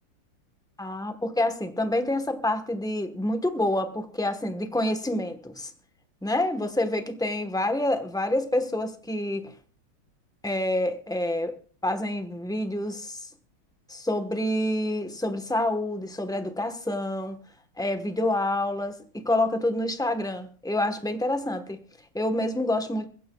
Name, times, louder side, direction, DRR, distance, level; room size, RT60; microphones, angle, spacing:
voice 1, 0.8-5.7 6.2-9.5 10.4-11.5 11.8-13.3 13.9-17.4 17.8-21.8 22.1-23.1, left 1 dB, 5° left, 8 dB, 0.4 m, -27 dB
22.5 x 16.0 x 2.3 m, 0.42 s
omnidirectional pair, 2.3 m